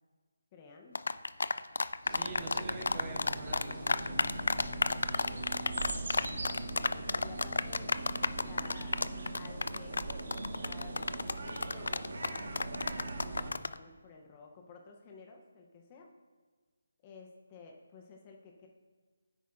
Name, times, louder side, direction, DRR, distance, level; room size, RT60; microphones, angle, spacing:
voice 1, 0.5-1.0 6.3-7.9 8.3-9.0 9.3-12.4 13.0-16.1 17.0-18.7, left 4 dB, 25° left, 2 dB, 0.8 m, -53 dB
sound 1, 0.9-13.8, left 3 dB, 75° left, 0.3 m, -31 dB
voice 2, 2.0-4.5 5.1-5.5, right 3 dB, 15° right, 1 dB, 1.0 m, -46 dB
sound 2, 2.0-13.5, right 2 dB, 65° right, 1.5 m, -41 dB
10.0 x 8.5 x 2.6 m, 1.4 s
figure-of-eight pair, 165°, 0 cm